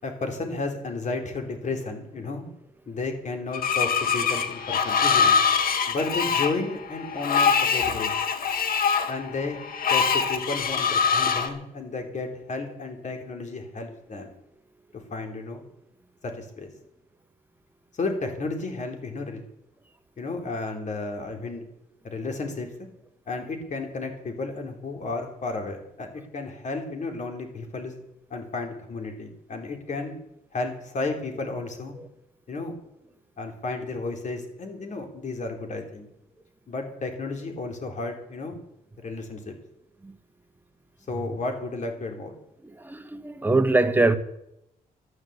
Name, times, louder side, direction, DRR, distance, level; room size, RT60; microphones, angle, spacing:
voice 1, 0.0-2.4 2.9-5.4 5.9-8.1 9.1-9.6 9.9-14.3 15.1-15.6 16.2-16.7 17.9-19.4 20.2-21.6 22.0-22.9 23.3-26.1 26.3-27.9 28.3-30.2 30.5-31.9 32.5-32.8 33.4-36.1 36.7-38.6 39.0-39.5 41.1-42.3, left 3 dB, 50° left, 4.0 m, -32 dB
Screech, 3.5-11.5, left 6 dB, 65° left, 1.9 m, -24 dB
voice 2, 42.7-44.2, right 2 dB, 10° right, 1.5 m, -23 dB
12.5 x 11.0 x 8.3 m
cardioid pair, 80°, 16 cm